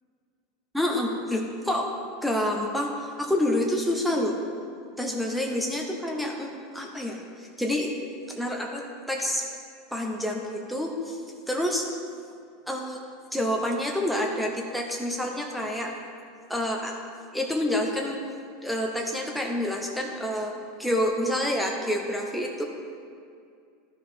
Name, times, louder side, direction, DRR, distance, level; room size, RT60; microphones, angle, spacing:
voice 1, 0.7-1.9 2.2-4.4 5.0-9.5 9.9-11.2 11.5-11.9 12.7-13.0 13.3-15.9 16.5-16.9 17.3-18.2 18.6-22.6, left 1 dB, ahead, 0 dB, 0.9 m, -28 dB
12.5 x 4.9 x 4.4 m, 2.3 s
hypercardioid pair, 85°, 0 cm